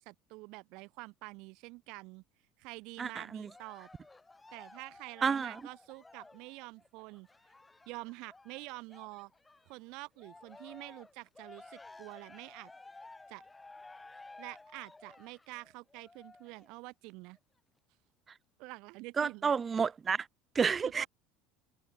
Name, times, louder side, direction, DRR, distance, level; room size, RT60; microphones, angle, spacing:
voice 1, 0.0-2.2 2.6-3.9 4.5-7.3 7.9-9.3 9.7-12.7 13.3-13.4 14.4-17.4 18.6-19.6 20.8-21.1, right 25 dB, 55° right, 2.0 m, -47 dB
voice 2, 3.0-3.5 5.2-5.6 19.2-20.3 20.5-21.1, right 6 dB, 20° right, 0.6 m, -30 dB
Cheering, 3.5-9.8 10.2-16.7 17.4-17.5, left 3 dB, 10° left, 5.1 m, -55 dB
cardioid pair, 165°, 0 cm